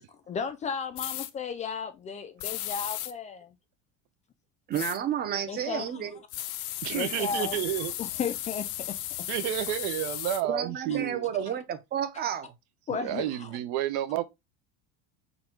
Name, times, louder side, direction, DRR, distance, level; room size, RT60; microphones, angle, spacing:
voice 1, 0.0-3.5 5.5-6.1 6.9-7.7 8.0-9.0 10.9-11.1 12.9-13.5, left 6 dB, 20° left, 0.3 m, -35 dB
sound 1, 1.0-1.3 2.4-3.1 4.7-5.0 6.3-10.4, left 13 dB, 75° left, 0.6 m, -35 dB
voice 2, 4.7-6.2 10.4-12.5, right 9 dB, 30° right, 0.8 m, -31 dB
voice 3, 6.8-7.9 9.3-11.2 13.0-14.2, right 12 dB, 65° right, 0.7 m, -30 dB
4.0 x 2.4 x 4.4 m
supercardioid pair, 135°, 33 cm